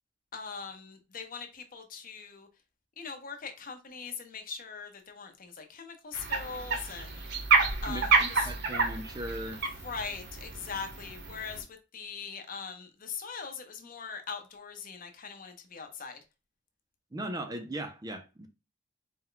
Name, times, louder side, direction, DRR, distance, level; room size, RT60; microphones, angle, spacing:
voice 1, 0.3-2.5 3.0-7.4 7.8-8.5 9.8-11.7 11.9-16.2, left 5 dB, 50° left, 0.8 m, -41 dB
sound 1, 6.1-11.6, right 4 dB, 60° right, 0.9 m, -29 dB
voice 2, 7.9-9.6 17.1-18.5, right 1 dB, 20° right, 0.5 m, -38 dB
4.3 x 2.2 x 3.8 m
head